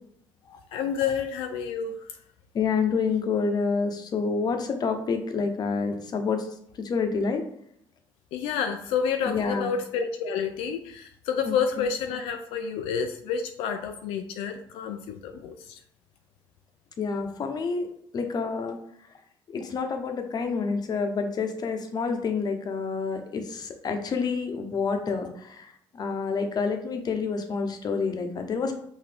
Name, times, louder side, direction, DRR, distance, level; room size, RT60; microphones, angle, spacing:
voice 1, 0.7-2.2 8.3-15.8, left 6 dB, 85° left, 5 dB, 0.4 m, -29 dB
voice 2, 2.5-6.4 6.8-7.4 9.3-9.7 11.5-11.6 17.0-17.9 18.1-18.8 19.5-28.7, left 5 dB, 45° left, 6 dB, 0.8 m, -28 dB
5.8 x 2.6 x 3.4 m, 0.69 s
cardioid pair, 85°, 9 cm